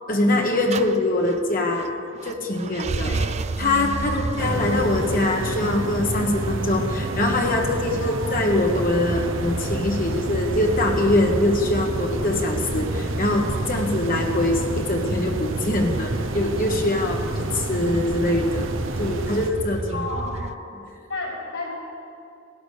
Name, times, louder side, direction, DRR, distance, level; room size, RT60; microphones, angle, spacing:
voice 1, 0.1-1.9 2.2-3.1 3.6-18.7 19.0-20.0, left 2 dB, 45° left, 1 dB, 1.4 m, -23 dB
sound 1, 0.7-20.6, right 3 dB, 35° right, 0.4 m, -31 dB
voice 2, 3.0-3.3 4.0-4.3 8.0-8.2 19.9-20.4 21.1-21.7, left 2 dB, 65° left, -3 dB, 4.7 m, -32 dB
sound 2, 4.4-19.5, right 1 dB, 80° right, 1.1 m, -30 dB
18.0 x 11.5 x 6.7 m, 2.6 s
head